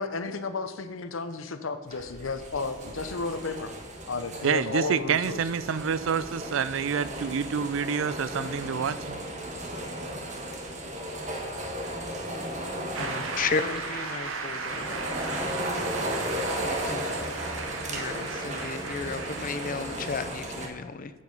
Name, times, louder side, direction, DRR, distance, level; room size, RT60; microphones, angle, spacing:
voice 1, 0.0-3.7 4.1-5.4, left 3 dB, 80° left, 10 dB, 0.8 m, -33 dB
sound 1, 1.9-20.7, right 1 dB, 40° right, 1.3 m, -35 dB
voice 2, 4.4-9.2, right 6 dB, 70° right, 16 dB, 0.4 m, -28 dB
Shout / Cheering / Applause, 12.9-20.4, right 4 dB, 90° right, 1.1 m, -37 dB
voice 3, 13.0-14.8 16.2-17.2 17.9-21.1, left 5 dB, 45° left, 12 dB, 0.5 m, -34 dB
8.4 x 7.4 x 5.4 m, 1.4 s
head